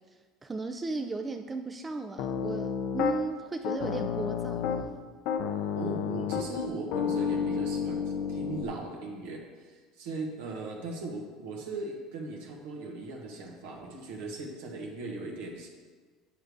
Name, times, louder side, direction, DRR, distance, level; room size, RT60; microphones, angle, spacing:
voice 1, 0.4-4.7, right 3 dB, 20° right, 5 dB, 0.5 m, -35 dB
Piano, 2.2-3.2 3.6-4.9 5.3-8.6, left 7 dB, 65° left, 0.7 m, -31 dB
voice 2, 5.7-15.7, right 2 dB, 75° right, 0 dB, 1.5 m, -38 dB
8.7 x 5.4 x 4.7 m, 1.5 s
hypercardioid pair, 75°, 0 cm